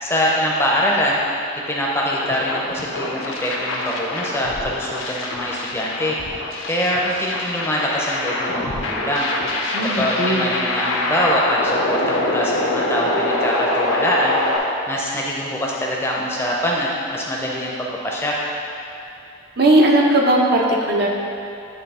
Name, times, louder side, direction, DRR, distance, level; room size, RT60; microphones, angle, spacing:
voice 1, 0.0-1.2 1.7-6.2 6.7-9.3 9.8-14.4 14.9-18.4, equal, 10° left, -3 dB, 0.6 m, -23 dB
sound 1, 2.1-14.6, left 2 dB, 85° left, 0.7 m, -25 dB
voice 2, 9.7-10.5 19.6-21.1, right 1 dB, 55° right, -1 dB, 0.7 m, -17 dB
9.2 x 3.1 x 4.2 m, 2.7 s
head